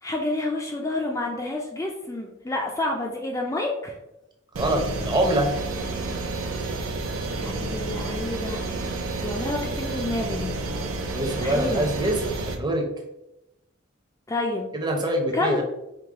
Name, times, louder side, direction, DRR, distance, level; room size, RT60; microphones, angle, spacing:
voice 1, 0.0-4.0 7.3-8.6 9.2-10.5 11.4-11.9 14.3-14.7 15.3-15.6, left 2 dB, 15° left, -1 dB, 0.3 m, -29 dB
voice 2, 4.5-5.5 11.1-12.8 14.7-15.6, right 1 dB, 20° right, 1 dB, 0.6 m, -25 dB
sound 1, 4.5-12.6, right 2 dB, 90° right, 0.6 m, -30 dB
4.7 x 2.1 x 3.5 m, 0.89 s
head